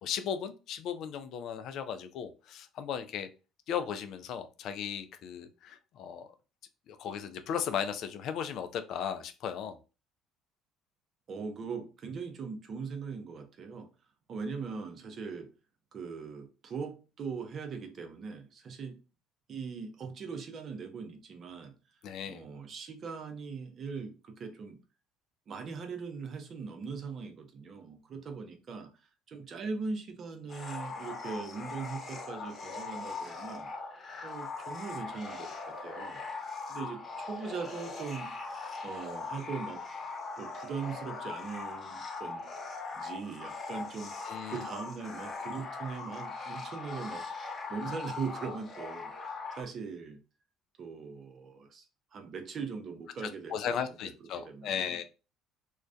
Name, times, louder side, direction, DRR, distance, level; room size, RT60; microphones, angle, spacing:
voice 1, 0.0-3.3 3.7-6.3 6.9-9.8 22.0-22.4 44.3-44.6 53.2-55.0, left 8 dB, 65° left, 0.3 m, -36 dB
voice 2, 11.3-13.9 14.3-15.5 15.9-19.0 19.5-21.7 22.3-24.8 25.5-28.9 29.3-33.7 34.2-36.2 36.7-38.3 38.8-39.8 40.4-42.5 42.9-47.2 47.7-50.2 50.8-51.9 52.1-53.8 54.0-55.0, right 5 dB, 50° right, 0.6 m, -40 dB
sound 1, 30.5-49.6, left 4 dB, 35° left, 0.9 m, -40 dB
2.3 x 2.1 x 2.5 m
hypercardioid pair, 65°, 0 cm